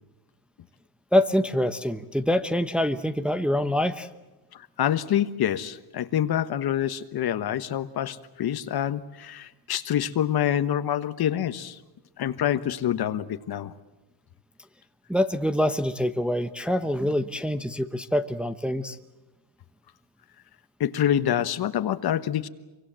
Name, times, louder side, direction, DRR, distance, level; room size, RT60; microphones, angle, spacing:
voice 1, 1.1-4.1 15.1-19.0, left 1 dB, ahead, 8 dB, 0.9 m, -25 dB
voice 2, 4.5-11.8 12.2-13.7 20.8-22.5, left 10 dB, 50° left, 13 dB, 1.3 m, -26 dB
26.5 x 24.5 x 7.6 m, 1.1 s
cardioid pair, 125°, 48 cm